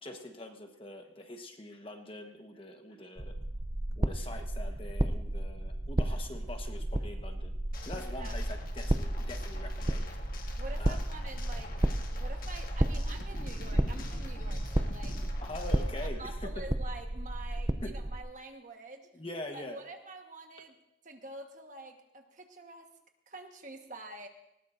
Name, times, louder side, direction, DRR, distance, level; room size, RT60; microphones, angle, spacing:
voice 1, 0.0-3.4 4.0-7.5 7.8-10.1 10.8-11.0 15.4-16.6 17.8-17.9 19.1-19.8, left 1 dB, 30° left, 4 dB, 1.2 m, -44 dB
sound 1, 3.2-18.2, right 1 dB, 20° right, 0.5 m, -33 dB
sound 2, 7.7-16.1, left 1 dB, 50° left, 1.6 m, -43 dB
voice 2, 10.6-11.9 12.1-15.2 16.0-19.1 19.5-20.8 21.0-22.9 23.3-24.3, right 2 dB, 40° right, 4 dB, 1.4 m, -47 dB
19.5 x 18.0 x 2.6 m, 0.84 s
head